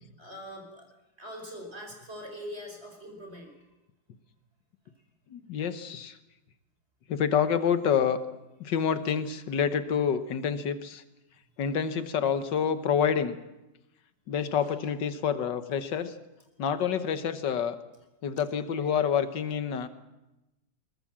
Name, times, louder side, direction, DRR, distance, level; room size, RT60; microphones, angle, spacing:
voice 1, 0.2-0.9 1.2-3.6 14.6-14.7, equal, 30° right, 2 dB, 5.1 m, -42 dB
voice 2, 5.3-6.2 7.1-8.2 8.6-11.0 11.6-13.4 14.3-16.1 16.6-17.8 18.2-19.9, left 7 dB, 70° left, 11 dB, 1.9 m, -27 dB
22.5 x 20.5 x 7.5 m, 0.97 s
omnidirectional pair, 2.0 m